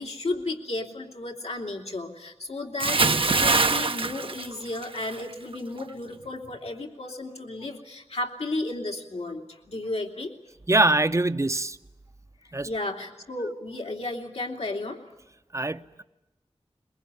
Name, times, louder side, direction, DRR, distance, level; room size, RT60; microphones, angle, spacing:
voice 1, 0.0-10.3 12.6-15.0, left 2 dB, 75° left, 2.8 m, -33 dB
Bathtub (filling or washing) / Splash splatter, 2.8-5.2 5.5-5.8, right 3 dB, 55° right, 0.8 m, -23 dB
voice 2, 10.7-11.8 12.5-12.7 15.5-16.0, right 2 dB, 30° right, 0.8 m, -23 dB
22.5 x 22.0 x 9.6 m
wide cardioid pair, 65°, 11 cm